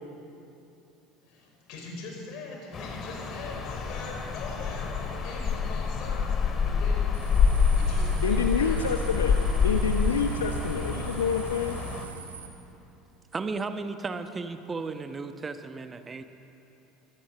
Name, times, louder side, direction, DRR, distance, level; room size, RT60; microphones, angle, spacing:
voice 1, 1.2-7.3 7.7-9.0, left 3 dB, 55° left, 1 dB, 5.5 m, -42 dB
sound 1, 2.7-12.0, left 5 dB, 35° left, 2.4 m, -27 dB
sound 2, 7.1-12.5, right 7 dB, 80° right, 1.9 m, -41 dB
voice 2, 8.2-9.3 9.6-11.7, left 6 dB, 80° left, 5 dB, 0.9 m, -27 dB
voice 3, 13.3-16.2, right 4 dB, 25° right, 9 dB, 1.1 m, -34 dB
22.5 x 17.5 x 6.9 m, 2.9 s
figure-of-eight pair, 70°, 0 cm